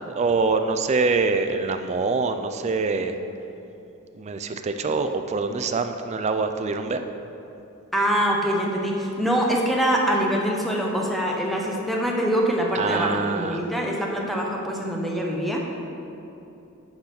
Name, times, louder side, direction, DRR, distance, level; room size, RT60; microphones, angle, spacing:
voice 1, 0.2-3.1 4.1-7.0 12.7-13.6, right 4 dB, 30° right, 8 dB, 0.4 m, -24 dB
voice 2, 7.9-15.6, equal, ahead, -2 dB, 0.8 m, -24 dB
8.7 x 3.9 x 5.8 m, 2.9 s
head